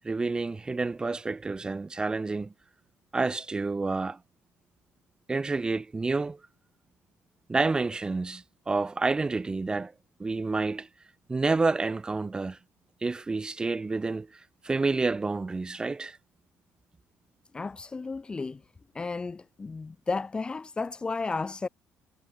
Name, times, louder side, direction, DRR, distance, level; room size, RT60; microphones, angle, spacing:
voice 1, 0.0-2.5 3.1-4.2 5.3-6.4 7.5-9.9 10.2-10.9 11.3-12.6 13.0-14.3 14.6-16.2, right 3 dB, 15° right, 4.1 m, -29 dB
voice 2, 17.5-18.6 18.9-21.7, left 4 dB, 20° left, 2.1 m, -33 dB
cardioid pair, 140°, 5 cm